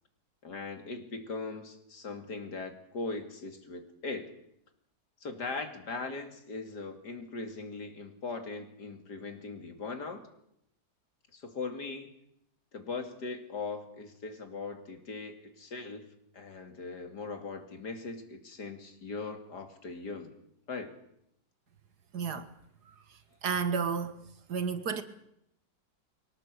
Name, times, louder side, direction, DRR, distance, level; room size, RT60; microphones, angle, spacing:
voice 1, 0.4-4.3 5.2-10.3 11.3-12.1 12.7-16.1 16.3-20.3 20.7-20.9, left 3 dB, 60° left, 3.1 m, -40 dB
voice 2, 22.1-22.5 23.1-24.2 24.5-25.0, right 6 dB, 60° right, 1.9 m, -32 dB
23.5 x 18.5 x 8.1 m
omnidirectional pair, 2.0 m